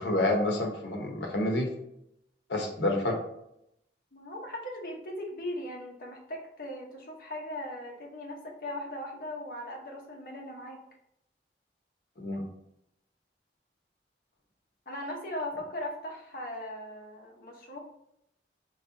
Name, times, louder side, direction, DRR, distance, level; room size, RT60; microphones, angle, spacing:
voice 1, 0.0-1.7 2.5-3.2 12.2-12.4, left 1 dB, 75° left, 1 dB, 1.0 m, -28 dB
voice 2, 4.1-10.8 14.9-17.8, left 1 dB, 50° left, -1 dB, 1.1 m, -39 dB
4.1 x 3.2 x 4.0 m, 0.78 s
head